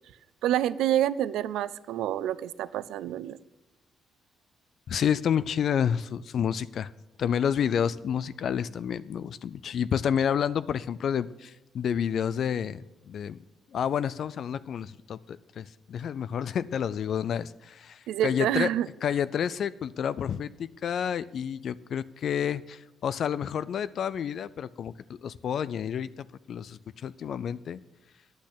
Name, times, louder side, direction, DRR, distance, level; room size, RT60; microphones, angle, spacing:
voice 1, 0.4-3.4 18.1-18.9, right 12 dB, 85° right, 17 dB, 0.4 m, -27 dB
voice 2, 4.9-6.9 7.2-13.4 13.7-18.7 19.0-27.8, left 8 dB, 60° left, 16 dB, 0.3 m, -29 dB
10.5 x 6.2 x 8.2 m, 0.96 s
cardioid pair, 90°, 0 cm